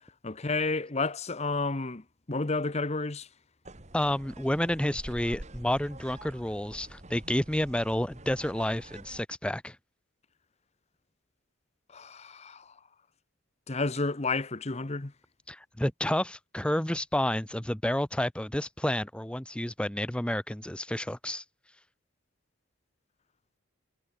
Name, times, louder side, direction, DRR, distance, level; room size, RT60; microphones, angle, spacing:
voice 1, 0.2-3.3 11.9-12.7 13.7-15.1, left 3 dB, 30° left, 1.0 m, -31 dB
sound 1, 3.6-9.2, right 1 dB, 35° right, 2.2 m, -46 dB
voice 2, 3.9-9.8 15.5-21.4, left 1 dB, 5° left, 0.6 m, -30 dB
head